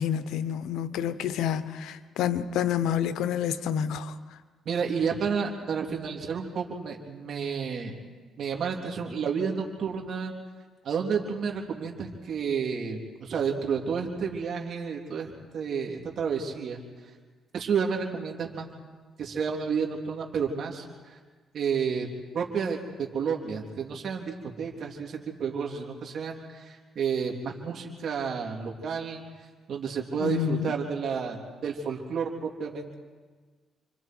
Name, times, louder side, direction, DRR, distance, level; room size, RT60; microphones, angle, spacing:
voice 1, 0.0-4.1 30.2-30.7, left 9 dB, 85° left, 1.0 m, -28 dB
voice 2, 4.6-7.9 8.4-10.3 10.8-16.8 17.5-18.7 19.2-21.2 21.5-22.1 22.3-29.2 29.7-32.9, right 6 dB, 60° right, 3.3 m, -31 dB
29.0 x 25.0 x 4.7 m
cardioid pair, 90°, 0 cm